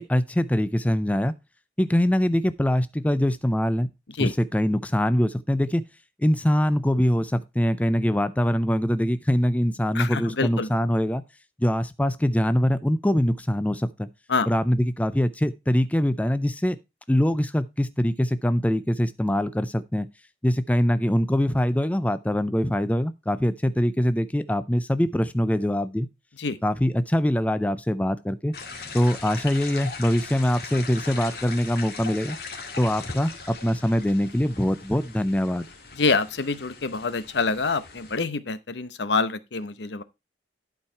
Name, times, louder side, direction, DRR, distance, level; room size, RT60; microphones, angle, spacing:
voice 1, 0.0-1.3 1.8-3.9 4.2-5.8 6.2-11.2 11.6-14.1 14.5-16.8 17.1-20.1 20.4-26.1 26.6-28.5 28.9-32.4 32.8-35.7, equal, 10° left, 0.4 m, -23 dB
voice 2, 9.9-10.7 14.3-14.5 26.4-26.6 35.9-40.0, left 4 dB, 75° left, 0.8 m, -26 dB
sound 1, 28.5-38.2, left 4 dB, 55° left, 2.0 m, -40 dB
11.5 x 4.7 x 4.4 m
head